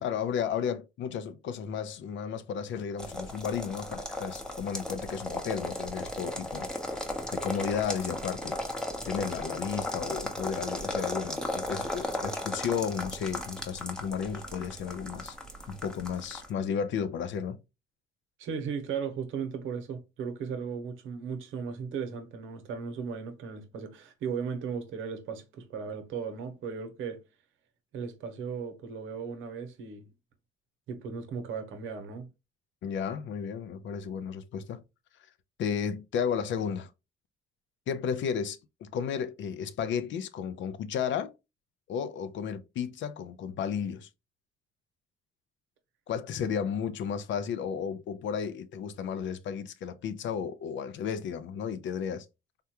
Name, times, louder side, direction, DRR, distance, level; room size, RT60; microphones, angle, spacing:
voice 1, 0.0-6.7 7.3-8.6 9.0-15.4 15.7-17.6 32.8-34.8 35.6-36.9 37.9-41.3 41.9-44.1 46.1-52.3, left 7 dB, 70° left, 0.5 m, -33 dB
sound 1, 3.0-16.5, left 1 dB, 5° left, 0.7 m, -36 dB
voice 2, 18.4-27.2 27.9-30.1 30.9-32.3, right 6 dB, 85° right, 0.8 m, -36 dB
3.5 x 2.2 x 2.8 m
cardioid pair, 90°, 20 cm